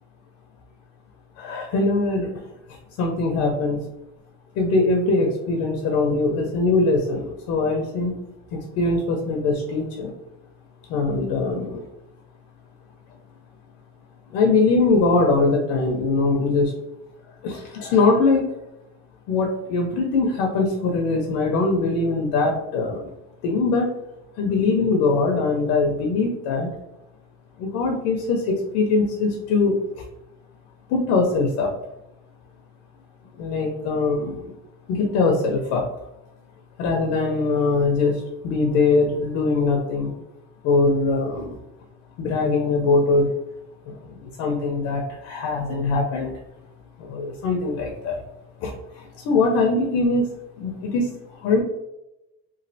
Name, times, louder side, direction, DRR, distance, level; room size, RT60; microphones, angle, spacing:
voice 1, 1.4-2.3 3.0-3.8 4.6-8.1 8.5-10.1 10.9-11.8 14.3-16.7 17.4-18.5 19.3-23.1 23.4-23.9 24.4-26.7 27.6-30.0 30.9-31.7 33.4-34.5 34.9-35.9 36.8-40.1 40.6-41.6 42.2-43.3 43.9-46.3 47.0-48.2 48.6-50.3 50.6-51.1 51.4-51.6, left 3 dB, 60° left, 1 dB, 0.6 m, -22 dB
3.1 x 2.4 x 2.6 m, 0.90 s
cardioid pair, 170°, 31 cm